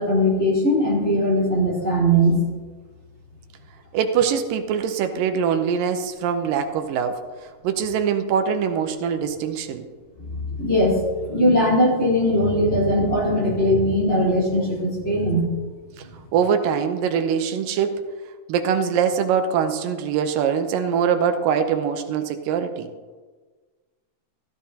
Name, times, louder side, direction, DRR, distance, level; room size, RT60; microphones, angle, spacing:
voice 1, 0.0-2.4 10.2-15.5, equal, 20° left, -6 dB, 4.0 m, -20 dB
voice 2, 3.9-7.2 7.6-9.9 16.3-18.0 18.5-22.9, right 7 dB, 85° right, 7 dB, 2.5 m, -23 dB
15.0 x 14.0 x 2.8 m, 1.4 s
omnidirectional pair, 3.8 m